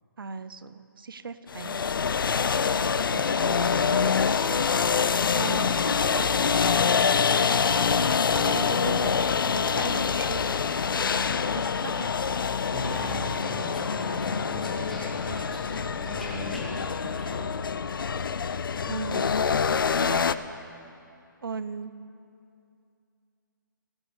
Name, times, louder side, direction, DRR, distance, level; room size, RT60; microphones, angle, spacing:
voice 1, 0.2-1.9 3.1-4.4 5.3-7.0 8.3-10.6 11.5-12.2 18.9-19.3 19.9-20.2 21.4-21.9, right 5 dB, 85° right, 14 dB, 0.6 m, -38 dB
sound 1, 1.5-20.3, left 6 dB, 75° left, 0.4 m, -25 dB
voice 2, 12.7-17.6, equal, ahead, -7 dB, 1.3 m, -38 dB
16.5 x 6.1 x 6.5 m, 2.6 s
hypercardioid pair, 170°, 11 cm